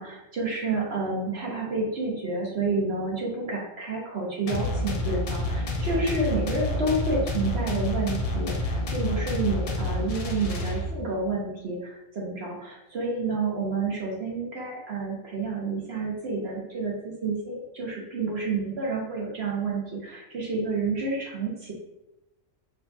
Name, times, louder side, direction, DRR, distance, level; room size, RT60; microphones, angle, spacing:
voice 1, 0.0-21.7, right 3 dB, 55° right, -3 dB, 1.0 m, -29 dB
sound 1, 4.5-11.2, left 1 dB, 60° left, 0.4 m, -29 dB
5.7 x 2.3 x 2.6 m, 0.95 s
omnidirectional pair, 1.4 m